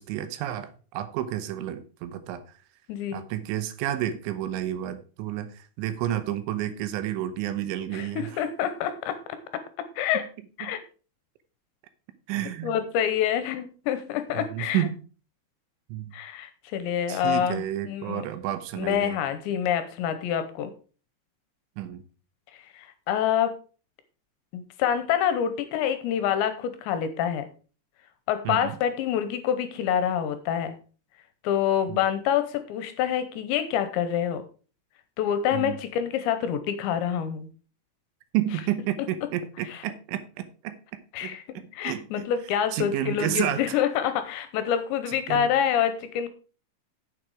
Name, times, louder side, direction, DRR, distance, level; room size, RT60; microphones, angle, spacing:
voice 1, 0.0-2.4 3.1-8.3 10.1-10.2 10.6-10.8 12.3-12.8 14.3-15.0 15.9-16.1 17.1-19.2 21.8-22.0 28.4-28.8 31.9-32.0 35.5-35.8 38.3-42.3 42.7-43.8 45.1-45.5, right 12 dB, 80° right, 10 dB, 3.2 m, -31 dB
voice 2, 2.9-3.2 7.9-9.4 9.8-10.2 10.6-10.8 12.6-14.9 16.1-18.3 18.8-20.7 22.7-23.5 24.5-27.5 28.3-30.7 31.4-34.4 35.2-37.5 39.7-39.8 41.1-41.4 41.7-46.3, left 9 dB, 75° left, 10 dB, 3.0 m, -27 dB
9.4 x 7.5 x 4.7 m, 0.37 s
omnidirectional pair, 5.5 m